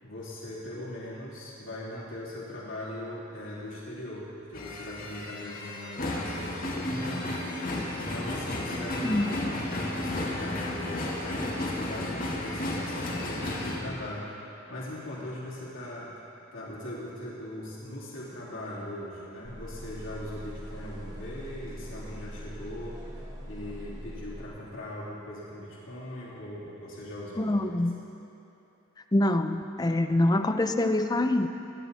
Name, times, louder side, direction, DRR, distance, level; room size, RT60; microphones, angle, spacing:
voice 1, 0.0-7.4 7.9-16.1 16.5-23.0 23.4-27.7, left 1 dB, 65° left, -8 dB, 3.1 m, -40 dB
sound 1, 4.5-13.8, left 1 dB, 45° left, 1.8 m, -33 dB
voice 2, 9.0-9.4 27.4-28.0 29.1-31.5, left 1 dB, 20° left, 7 dB, 0.5 m, -25 dB
sound 2, 19.4-24.5, equal, 20° right, 1.4 m, -42 dB
23.0 x 9.7 x 4.1 m, 2.9 s
head